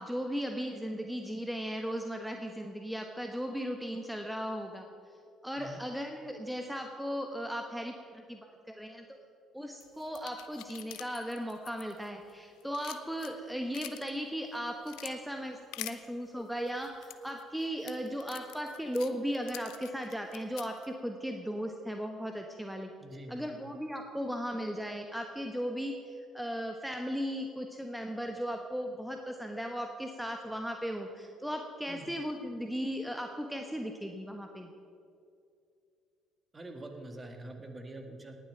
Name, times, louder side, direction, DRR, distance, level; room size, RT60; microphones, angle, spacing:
voice 1, 0.0-4.9 5.4-9.1 9.5-22.9 23.3-34.7, equal, ahead, 4 dB, 1.1 m, -37 dB
sound 1, 9.8-12.3 12.6-14.1 14.5-15.1 15.7-16.0 16.7-20.9, left 16 dB, 70° left, 0.6 m, -46 dB
voice 2, 23.0-23.4 31.9-32.1 36.5-38.4, right 1 dB, 25° right, 4 dB, 1.9 m, -45 dB
18.5 x 7.6 x 5.8 m, 2.5 s
hypercardioid pair, 50°, 0 cm